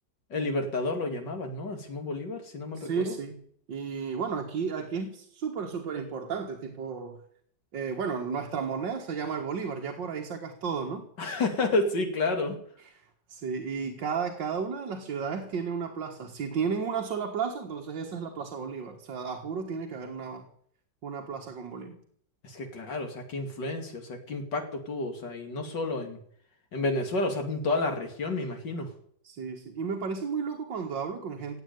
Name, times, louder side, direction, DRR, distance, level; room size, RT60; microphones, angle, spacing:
voice 1, 0.3-3.2 11.2-12.6 22.4-26.2 26.7-28.9, left 2 dB, 70° left, 4 dB, 3.1 m, -30 dB
voice 2, 2.8-3.4 3.7-7.2 7.7-11.0 12.8-12.9 13.3-20.5 21.0-22.0 29.2-31.6, right 6 dB, 80° right, 2 dB, 2.3 m, -33 dB
17.5 x 8.3 x 9.4 m, 0.65 s
omnidirectional pair, 2.0 m